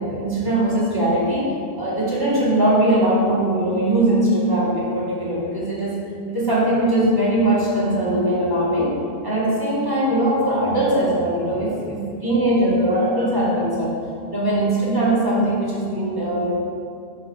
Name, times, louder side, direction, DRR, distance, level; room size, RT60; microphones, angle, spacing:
voice 1, 0.0-14.0 14.3-16.5, right 1 dB, 20° right, -8 dB, 2.2 m, -21 dB
11.5 x 4.2 x 4.8 m, 2.4 s
omnidirectional pair, 1.1 m